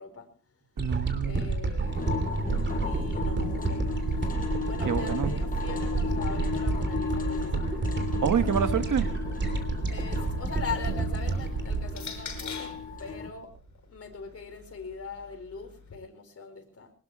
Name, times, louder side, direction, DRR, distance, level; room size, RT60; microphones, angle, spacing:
voice 1, 0.0-0.6 1.2-2.1 2.8-4.3 4.6-8.0 9.8-13.6 13.9-16.9, left 5 dB, 50° left, 4 dB, 4.6 m, -42 dB
sound 1, 0.8-13.1 13.6-13.7, right 3 dB, 35° right, 3.1 m, -30 dB
voice 2, 0.8-1.4 4.8-5.3 8.2-9.1, right 7 dB, 85° right, 9 dB, 1.6 m, -27 dB
sound 2, 1.8-13.3, left 5 dB, 25° left, 5.3 m, -35 dB
sound 3, 10.5-12.9 13.8-15.9, left 5 dB, 65° left, 6.3 m, -45 dB
23.0 x 20.0 x 3.1 m, 0.36 s
wide cardioid pair, 170°, 31 cm